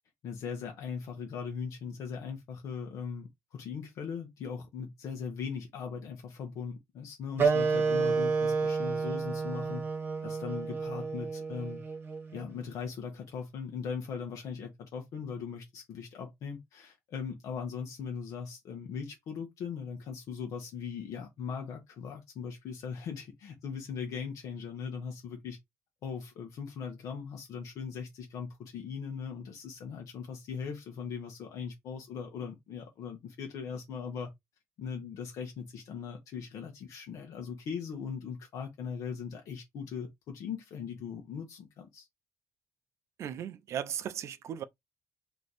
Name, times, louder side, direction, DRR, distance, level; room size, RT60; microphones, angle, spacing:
voice 1, 0.2-9.8 10.2-11.8 12.3-25.6 26.0-34.3 34.8-42.1, left 6 dB, 70° left, 1.2 m, -39 dB
Wind instrument woodwind instrument, 7.4-12.5, right 5 dB, 35° right, 1.0 m, -30 dB
voice 2, 43.2-44.6, right 9 dB, 55° right, 0.5 m, -36 dB
3.3 x 3.0 x 4.1 m
cardioid pair, 140°, 6 cm